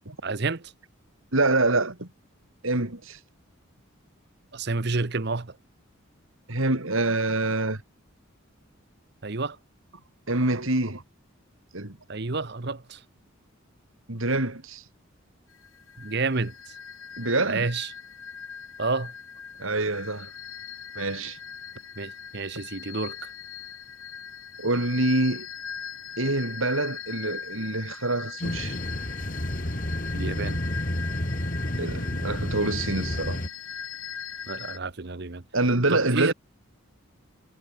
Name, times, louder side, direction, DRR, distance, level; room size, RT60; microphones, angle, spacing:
voice 1, 0.2-0.7 4.5-5.6 9.2-9.6 12.1-13.0 16.0-16.7 17.4-17.9 18.8-19.1 22.0-23.3 30.1-30.6 34.5-35.4 35.9-36.3, right 3 dB, 50° right, 1.0 m, -30 dB
voice 2, 1.3-2.1 2.6-3.2 6.5-7.8 10.3-11.0 11.7-12.0 14.1-14.8 17.2-17.7 19.6-20.3 20.9-21.4 24.6-25.5 26.2-28.8 31.8-33.4 35.5-36.3, right 2 dB, 75° right, 3.2 m, -26 dB
sound 1, 15.5-34.8, left 7 dB, 80° left, 3.7 m, -40 dB
sound 2, 28.4-33.5, left 1 dB, 40° left, 3.6 m, -30 dB
head